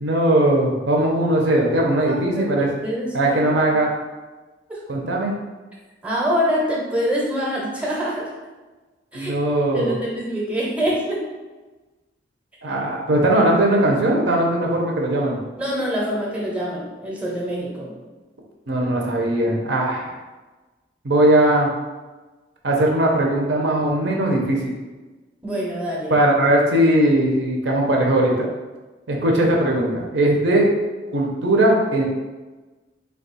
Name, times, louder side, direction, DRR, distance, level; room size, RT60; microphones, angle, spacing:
voice 1, 0.0-2.7 3.1-3.9 4.9-5.3 9.1-10.0 12.6-15.4 18.7-20.1 21.0-21.7 22.6-24.7 26.1-28.5 29.1-30.7 31.1-32.0, right 1 dB, 75° right, -1 dB, 0.7 m, -19 dB
voice 2, 2.0-3.4 3.7-3.8 4.7-4.8 6.0-8.3 9.1-9.3 9.7-11.3 15.6-18.0 25.4-26.2, equal, 5° right, -4 dB, 0.7 m, -25 dB
3.4 x 2.3 x 4.0 m, 1.2 s
head